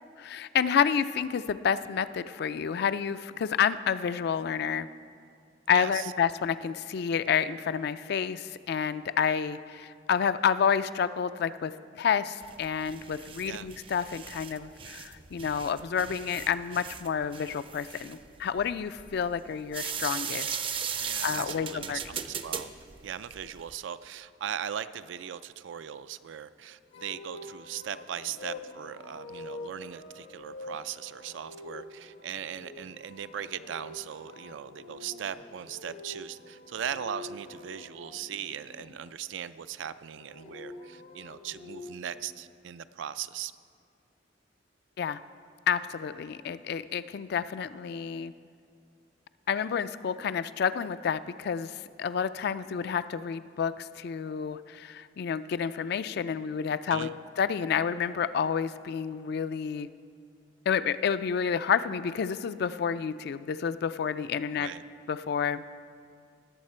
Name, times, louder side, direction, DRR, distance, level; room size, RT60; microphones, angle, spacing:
voice 1, 0.2-4.9 5.7-20.5 20.9-22.0 45.0-45.2 45.7-48.3 49.5-57.1 57.4-59.9 60.7-64.7 65.1-65.6, left 7 dB, 60° left, 14 dB, 0.3 m, -29 dB
voice 2, 5.7-6.1 13.4-13.7 21.0-22.7 23.0-43.5 56.9-57.2 64.6-64.8, right 9 dB, 85° right, 13 dB, 0.4 m, -39 dB
sound 1, 12.4-23.7, right 7 dB, 30° right, 0.4 m, -38 dB
sound 2, 26.9-38.8 40.0-42.2, left 2 dB, 80° left, 1.0 m, -46 dB
18.0 x 7.3 x 4.3 m, 2.2 s
head